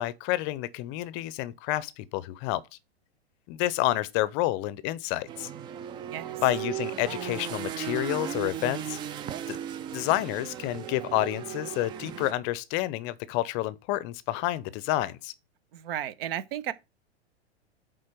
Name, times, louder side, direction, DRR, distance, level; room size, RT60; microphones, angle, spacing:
voice 1, 0.0-2.6 3.5-5.5 6.4-9.0 9.5-9.6 9.9-15.3, left 16 dB, 35° left, 0.6 m, -29 dB
sound 1, 5.3-12.3, right 10 dB, 15° right, 0.3 m, -36 dB
voice 2, 15.7-16.7, right 11 dB, 60° right, 1.0 m, -33 dB
8.6 x 3.8 x 5.1 m
hypercardioid pair, 115°, 33 cm